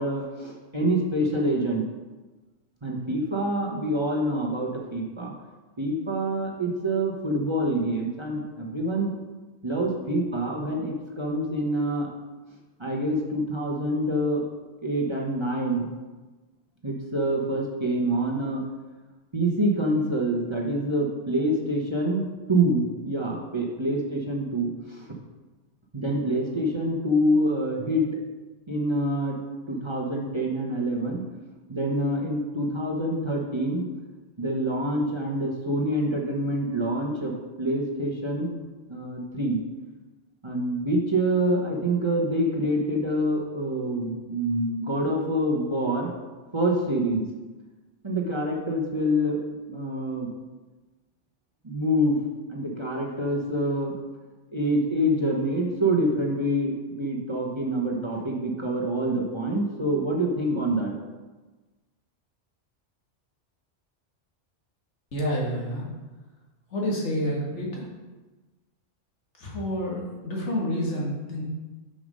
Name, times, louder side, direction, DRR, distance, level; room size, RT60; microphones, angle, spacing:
voice 1, 0.0-1.8 2.8-5.3 5.8-9.1 9.6-12.1 12.8-14.4 14.8-15.9 16.8-18.6 19.3-25.1 25.9-28.0 28.7-29.4 29.7-31.2 31.7-33.8 34.4-38.6 38.9-39.6 40.4-46.1 46.5-47.2 48.0-49.4 49.7-50.3 51.6-52.2 52.5-53.9 54.5-60.9, right 1 dB, 25° right, -2 dB, 1.0 m, -26 dB
voice 2, 65.1-65.9 66.7-67.9 69.4-71.4, equal, 70° left, -3 dB, 2.1 m, -29 dB
6.7 x 5.5 x 5.2 m, 1.2 s
omnidirectional pair, 1.2 m